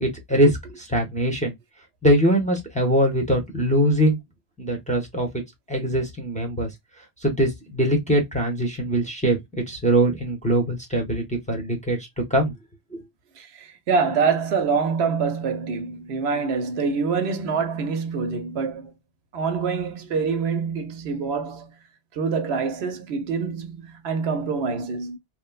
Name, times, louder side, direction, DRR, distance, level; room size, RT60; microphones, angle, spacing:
voice 1, 0.0-1.5 2.0-4.2 4.6-5.4 5.7-6.7 7.2-9.4 9.7-12.0 12.3-12.5 12.9-13.0, right 1 dB, 10° left, 0.7 m, -22 dB
voice 2, 13.4-18.9 19.3-21.8 22.1-25.2, right 5 dB, 75° right, 0.9 m, -25 dB
3.2 x 2.0 x 2.2 m
omnidirectional pair, 1.1 m